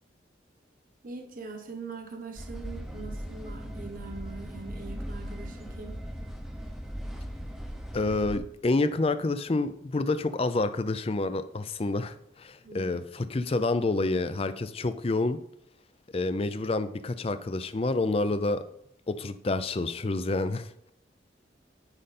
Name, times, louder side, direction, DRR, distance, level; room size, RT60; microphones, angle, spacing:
voice 1, 1.0-6.0 12.6-13.0, right 4 dB, 45° right, 3 dB, 1.1 m, -42 dB
sound 1, 2.4-8.4, equal, ahead, 0.8 m, -38 dB
voice 2, 7.9-15.4 16.1-18.7 19.1-20.9, left 2 dB, 30° left, 12 dB, 0.4 m, -28 dB
9.9 x 5.5 x 4.2 m, 0.74 s
head